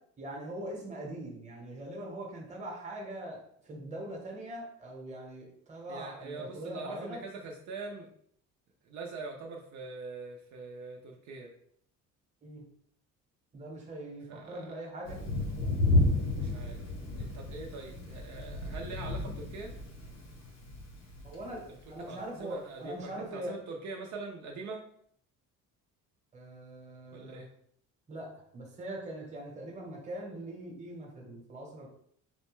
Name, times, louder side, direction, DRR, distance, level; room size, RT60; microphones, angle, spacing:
voice 1, 0.2-3.4 3.6-7.2 12.4-12.6 13.5-15.2 21.2-23.5 26.3-27.4 28.1-31.9, right 1 dB, 25° right, -1 dB, 1.0 m, -42 dB
voice 2, 5.9-8.1 8.8-11.5 14.3-14.8 16.3-16.8 17.2-19.7 22.1-24.8 27.1-27.5, right 3 dB, 65° right, 0 dB, 0.6 m, -43 dB
Thunder, 15.0-21.9, left 2 dB, 55° left, 0.8 m, -32 dB
4.0 x 2.2 x 3.0 m, 0.65 s
cardioid pair, 150°, 31 cm